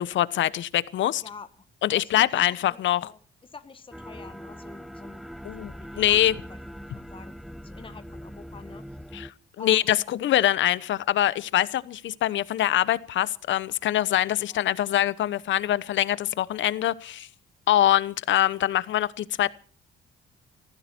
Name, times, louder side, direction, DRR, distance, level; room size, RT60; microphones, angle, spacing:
voice 1, 0.0-1.2 1.8-3.0 5.4-6.3 9.1-9.3 9.6-17.3 17.7-19.5, left 12 dB, 70° left, 1.0 m, -24 dB
voice 2, 1.9-5.2 5.6-6.2 6.9-7.3 7.6-9.0 9.6-10.0 14.5-14.7, left 4 dB, 25° left, 1.5 m, -46 dB
sound 1, 3.9-9.3, equal, ahead, 0.7 m, -41 dB
19.0 x 15.0 x 4.5 m
cardioid pair, 90°, 20 cm